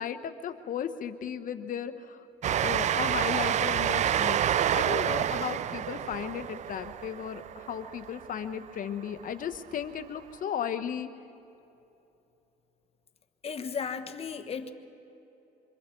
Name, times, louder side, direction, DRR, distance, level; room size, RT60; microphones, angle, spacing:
voice 1, 0.0-2.3 2.6-11.1, left 8 dB, 55° left, 10 dB, 1.2 m, -35 dB
Train, 2.4-8.6, right 10 dB, 45° right, 0.4 m, -28 dB
voice 2, 13.4-14.7, left 6 dB, 35° left, 8 dB, 1.3 m, -35 dB
27.0 x 25.0 x 4.6 m, 2.8 s
cardioid pair, 110°, 17 cm